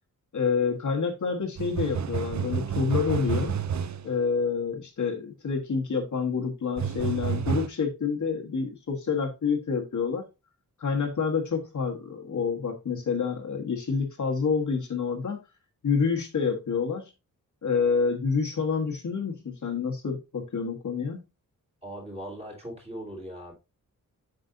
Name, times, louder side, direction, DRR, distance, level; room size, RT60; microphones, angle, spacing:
voice 1, 0.3-3.5 4.0-10.3 10.8-15.4 15.8-17.1 17.6-21.2, left 5 dB, 60° left, 1.5 m, -28 dB
sound 1, 1.6-4.1 6.8-7.7, right 7 dB, 55° right, 0.6 m, -29 dB
voice 2, 21.8-23.5, right 1 dB, 15° right, 3.1 m, -39 dB
7.7 x 6.0 x 2.7 m
wide cardioid pair, 175°, 34 cm